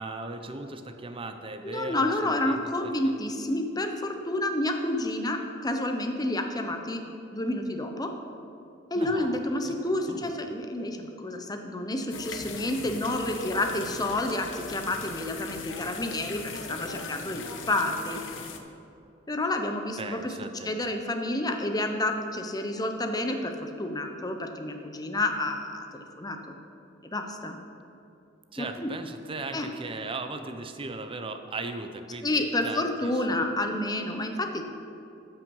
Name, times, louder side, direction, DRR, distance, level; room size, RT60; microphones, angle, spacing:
voice 1, 0.0-2.9 9.0-9.7 10.1-10.3 20.0-20.7 28.5-33.5, right 3 dB, 30° right, 7 dB, 0.6 m, -38 dB
voice 2, 1.6-7.0 7.3-8.1 8.9-18.2 19.3-20.3 20.6-26.5 27.0-27.6 28.6-28.9 29.5-29.7 32.2-34.7, left 1 dB, 20° left, 5 dB, 0.8 m, -29 dB
sound 1, 12.1-18.6, left 4 dB, 80° left, 0.9 m, -39 dB
13.5 x 5.8 x 5.4 m, 2.7 s
head